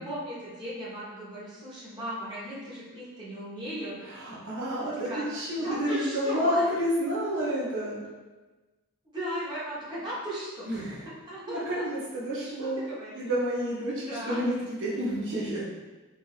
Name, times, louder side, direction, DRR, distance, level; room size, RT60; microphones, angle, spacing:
voice 1, 0.0-3.9 5.0-5.2 5.6-6.7 9.0-10.8 11.1-11.8 12.4-13.3 14.1-14.4, equal, 20° right, -9 dB, 0.9 m, -37 dB
voice 2, 4.0-8.0 10.7-11.0 11.5-12.8 13.1-15.6, equal, 55° right, -7 dB, 0.7 m, -30 dB
3.4 x 2.5 x 2.3 m, 1.2 s
head